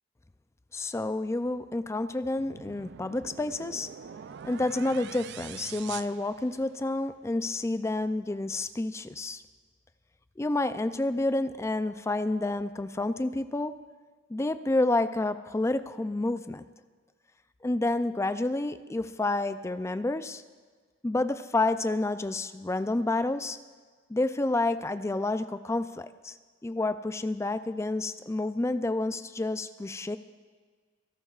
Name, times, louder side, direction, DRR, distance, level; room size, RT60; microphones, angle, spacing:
voice 1, 0.7-3.9 4.4-9.4 10.4-13.7 14.3-16.6 17.6-20.4 21.0-23.6 24.1-26.4 26.6-30.2, left 2 dB, 15° left, 12 dB, 0.4 m, -29 dB
sound 1, 2.4-7.0, right 8 dB, 60° right, 0.4 m, -45 dB
28.0 x 12.0 x 2.4 m, 1.5 s
head